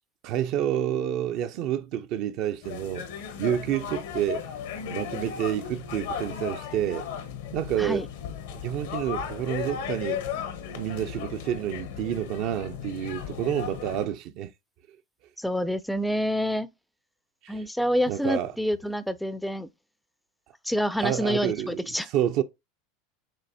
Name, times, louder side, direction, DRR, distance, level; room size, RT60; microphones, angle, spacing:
voice 1, 0.2-3.1 3.4-4.4 4.9-7.1 7.5-8.1 8.5-10.2 10.7-14.5 17.4-17.7 18.1-18.5 21.0-22.4, right 11 dB, 55° right, 0.5 m, -29 dB
sound 1, 2.6-14.0, left 8 dB, 75° left, 0.9 m, -36 dB
voice 2, 15.4-16.7 17.5-19.7 20.6-22.1, equal, ahead, 0.4 m, -27 dB
7.4 x 2.6 x 2.6 m
hypercardioid pair, 100°, 0 cm